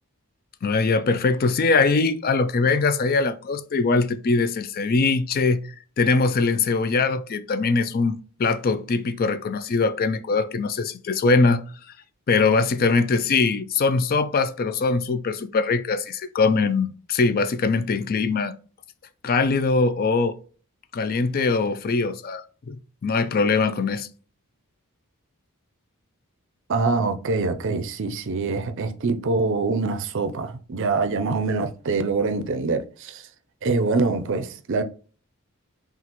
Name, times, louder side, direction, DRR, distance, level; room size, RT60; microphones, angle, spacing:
voice 1, 0.6-5.7 6.0-11.6 12.3-18.5 19.2-20.4 20.9-22.8 23.0-24.1, left 4 dB, 45° left, 0.4 m, -22 dB
voice 2, 26.7-33.2 33.6-34.8, right 3 dB, 60° right, 0.5 m, -24 dB
5.8 x 2.4 x 2.9 m
head